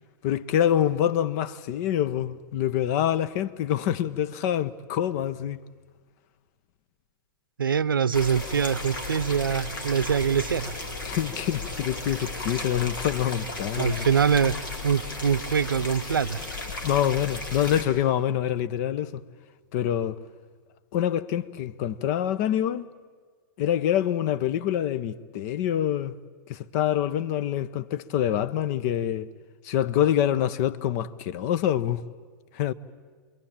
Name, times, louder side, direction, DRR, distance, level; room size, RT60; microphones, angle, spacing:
voice 1, 0.2-5.6 11.0-14.1 16.8-19.2 19.7-20.2 20.9-22.9 23.6-26.1 26.5-29.3 29.6-32.0 32.5-32.7, left 10 dB, 50° left, 1.0 m, -26 dB
voice 2, 7.6-10.7 13.8-14.6 14.8-16.4, right 7 dB, 85° right, 0.7 m, -24 dB
sound 1, 8.1-17.8, left 3 dB, 75° left, 4.5 m, -35 dB
27.5 x 22.5 x 8.9 m
hypercardioid pair, 100°, 11 cm